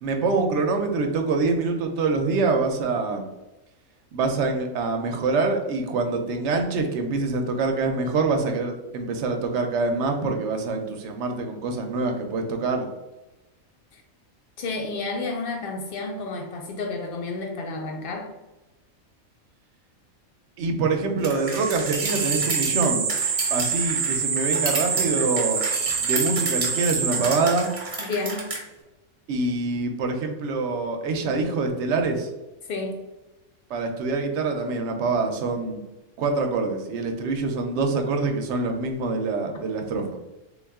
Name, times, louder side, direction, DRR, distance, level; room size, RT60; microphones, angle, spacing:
voice 1, 0.0-3.3 4.1-12.9 20.6-23.1 23.5-25.6 26.0-27.7 29.3-32.3 33.7-35.8 36.2-40.1, right 3 dB, 65° right, 4 dB, 0.8 m, -25 dB
voice 2, 14.6-18.3 28.0-28.5 32.6-32.9, left 3 dB, 70° left, 3 dB, 0.5 m, -31 dB
sound 1, 21.2-28.6, right 2 dB, 40° right, 0.4 m, -32 dB
sound 2, 21.4-27.9, right 6 dB, 90° right, 1.1 m, -26 dB
3.4 x 2.3 x 3.5 m, 1.0 s
omnidirectional pair, 1.4 m